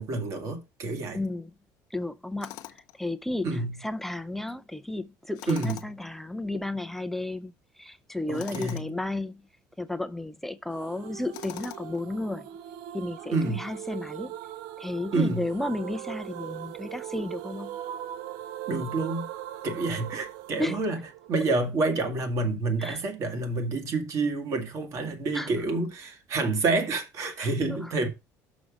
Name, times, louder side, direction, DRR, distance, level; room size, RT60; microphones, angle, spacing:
voice 1, 0.0-1.2 3.4-3.8 5.5-5.9 8.3-9.0 13.3-13.6 15.1-15.5 18.7-19.3 19.6-21.0 21.3-28.1, right 3 dB, 45° right, 2.1 m, -28 dB
voice 2, 1.1-1.5 1.9-2.6 3.0-9.4 9.8-12.5 12.9-14.3 14.8-17.8 20.6-20.8 22.8-23.0 25.3-25.5 27.4-27.9, left 2 dB, 5° left, 0.5 m, -33 dB
Tools, 2.4-3.0 5.3-6.1 8.3-8.9 11.3-12.0, left 16 dB, 75° left, 0.7 m, -42 dB
sound 1, 10.8-21.7, right 12 dB, 80° right, 0.6 m, -40 dB
6.3 x 6.0 x 5.1 m
cardioid pair, 145°, 7 cm